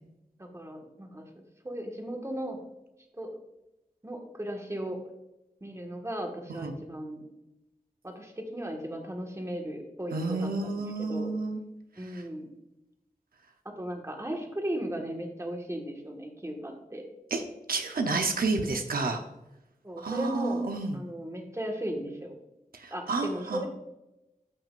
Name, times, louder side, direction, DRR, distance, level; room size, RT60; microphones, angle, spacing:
voice 1, 0.4-1.3 1.6-2.6 3.1-3.3 4.0-5.0 5.6-7.2 8.0-11.3 12.0-12.5 13.6-17.0 19.8-20.7 20.9-22.3 22.9-23.7, right 1 dB, 20° right, 2 dB, 1.6 m, -36 dB
voice 2, 10.1-11.6 12.0-12.2 17.3-17.4 17.7-19.2 20.0-21.0 22.7-23.6, right 3 dB, 85° right, 5 dB, 0.8 m, -30 dB
14.0 x 6.0 x 2.5 m, 0.93 s
wide cardioid pair, 85°, 15 cm